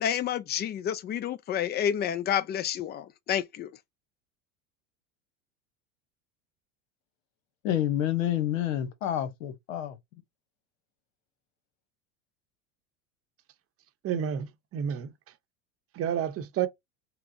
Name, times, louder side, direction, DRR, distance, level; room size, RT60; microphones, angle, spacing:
voice 1, 0.0-3.7, left 9 dB, 25° left, 0.4 m, -29 dB
voice 2, 7.6-10.0, left 11 dB, 85° left, 0.9 m, -28 dB
voice 3, 14.0-15.1 15.9-16.7, right 9 dB, 35° right, 0.7 m, -30 dB
5.8 x 2.0 x 2.6 m
hypercardioid pair, 95°, 38 cm